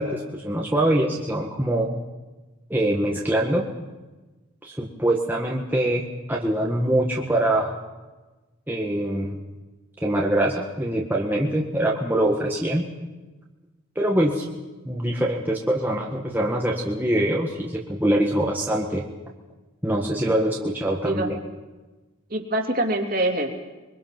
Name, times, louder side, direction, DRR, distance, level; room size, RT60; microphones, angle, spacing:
voice 1, 0.0-1.9 2.7-3.7 4.6-7.8 8.7-9.4 10.0-12.9 14.0-14.4 14.9-19.0 19.8-21.3, right 1 dB, 10° right, -3 dB, 1.6 m, -24 dB
voice 2, 22.3-23.5, right 1 dB, 45° right, 2 dB, 2.9 m, -24 dB
24.5 x 23.0 x 6.0 m, 1.2 s
head